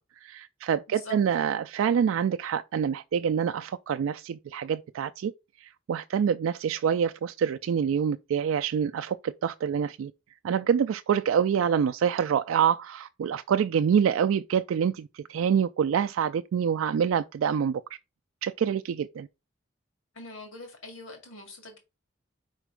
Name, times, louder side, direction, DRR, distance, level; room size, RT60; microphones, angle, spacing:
voice 1, 0.2-5.3 5.6-10.1 10.4-17.8 18.4-19.3, right 7 dB, 85° right, 0.3 m, -26 dB
voice 2, 20.1-21.8, left 2 dB, 85° left, 2.2 m, -43 dB
4.9 x 4.5 x 4.6 m
head